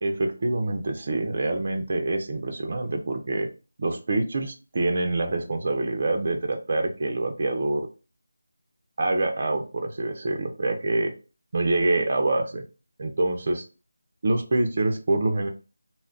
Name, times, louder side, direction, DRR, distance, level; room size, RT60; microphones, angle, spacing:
voice 1, 0.0-3.5 3.8-7.9 9.0-11.1 11.5-12.6 13.0-13.6 14.2-15.5, right 2 dB, 45° right, 3 dB, 0.6 m, -26 dB
2.2 x 2.1 x 3.7 m, 0.33 s
figure-of-eight pair, 165°, 0 cm